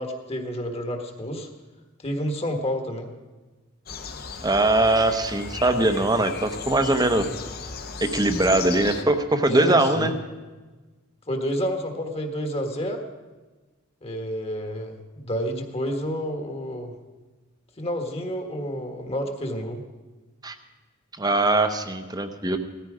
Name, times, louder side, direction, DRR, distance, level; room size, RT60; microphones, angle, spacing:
voice 1, 0.0-1.5 2.0-3.1 9.5-10.1 11.3-13.0 14.0-16.9 17.8-19.8, equal, 30° left, 5 dB, 1.5 m, -29 dB
sound 1, 3.9-9.0, left 5 dB, 45° left, 1.0 m, -36 dB
voice 2, 4.4-7.3 8.0-10.1 20.4-20.5 21.2-22.6, right 2 dB, 20° right, 8 dB, 0.9 m, -21 dB
17.0 x 13.5 x 5.0 m, 1.3 s
head